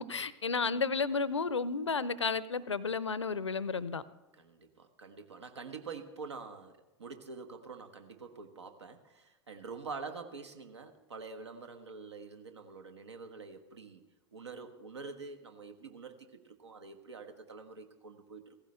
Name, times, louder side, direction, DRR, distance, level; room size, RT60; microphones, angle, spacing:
voice 1, 0.0-4.0, left 4 dB, 80° left, 18 dB, 0.6 m, -32 dB
voice 2, 4.3-14.0 14.3-18.6, right 4 dB, 70° right, 7 dB, 1.3 m, -46 dB
16.5 x 15.0 x 3.3 m, 1.1 s
figure-of-eight pair, 90°, 15 cm